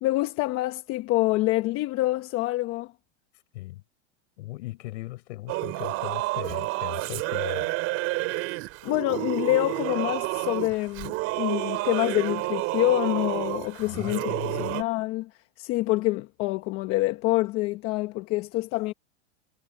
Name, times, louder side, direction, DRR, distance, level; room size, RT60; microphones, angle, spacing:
voice 1, 0.0-2.9 8.8-15.3 15.6-18.9, left 18 dB, 35° left, 1.2 m, -26 dB
voice 2, 4.4-7.7 13.8-14.8, left 19 dB, 65° left, 6.9 m, -38 dB
Singing / Musical instrument, 5.5-14.8, right 21 dB, 40° right, 3.1 m, -30 dB
supercardioid pair, 155°, 36 cm